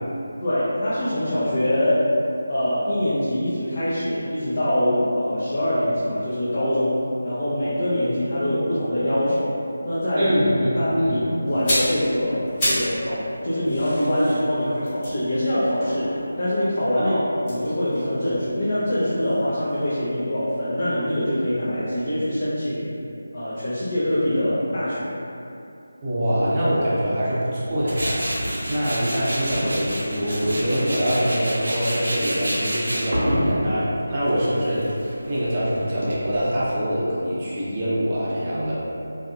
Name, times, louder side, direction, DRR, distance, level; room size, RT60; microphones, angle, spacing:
voice 1, 0.4-2.1 2.5-9.5 9.8-10.3 10.7-22.8 23.3-25.1, left 1 dB, 45° left, -13 dB, 0.7 m, -24 dB
voice 2, 10.2-10.7 11.0-11.2 16.9-17.2 26.0-38.7, equal, 25° right, -9 dB, 0.6 m, -24 dB
sound 1, 11.5-13.0 13.3-16.5 17.4-19.4 19.7-19.9, equal, 20° left, 1.2 m, -30 dB
Tools, 27.9-36.7, equal, 70° right, 0.7 m, -28 dB
2.7 x 2.5 x 2.3 m, 2.7 s
figure-of-eight pair, 165°, 0 cm